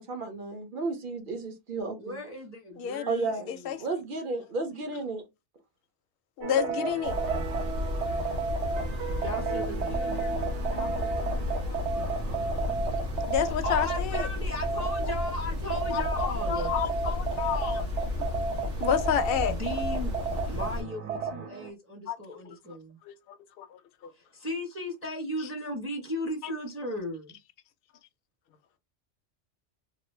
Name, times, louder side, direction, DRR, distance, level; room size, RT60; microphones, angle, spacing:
voice 1, 0.0-2.2 3.1-3.5 3.8-5.2, right 3 dB, 50° right, 0.9 m, -33 dB
voice 2, 2.0-3.8 9.2-10.4 12.2-16.7 19.5-20.1 20.4-23.0 24.1-27.3, left 1 dB, 15° right, 0.7 m, -37 dB
voice 3, 2.8-3.8 6.4-7.1 10.8-11.2 11.5-11.8 13.3-14.3 15.9-17.9 18.8-19.6 22.1-22.5 23.1-23.2 23.6-23.7 24.0-24.1, left 8 dB, 60° left, 0.7 m, -30 dB
sound 1, 6.4-15.3 15.7-21.7, right 5 dB, 75° right, 0.9 m, -32 dB
sound 2, 7.0-20.8, left 2 dB, 90° right, 1.4 m, -33 dB
3.1 x 2.4 x 3.1 m
omnidirectional pair, 1.2 m